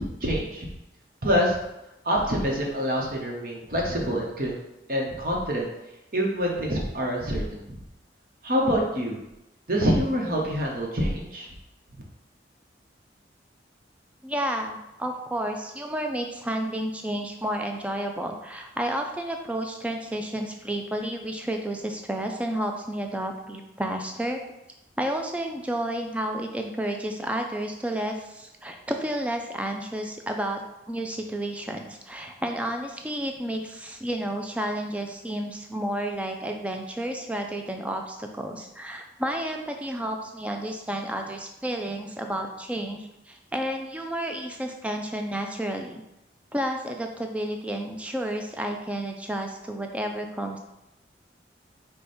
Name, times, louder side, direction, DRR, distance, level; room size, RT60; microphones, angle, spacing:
voice 1, 0.2-0.7 1.2-1.6 2.0-4.6 4.9-5.7 6.1-7.8 8.4-9.2 9.7-11.5, equal, 50° right, -1 dB, 0.9 m, -26 dB
voice 2, 14.2-24.4 25.0-30.6 30.9-46.0 46.5-50.6, right 1 dB, 5° right, 3 dB, 0.3 m, -31 dB
4.9 x 2.3 x 4.3 m, 0.91 s
head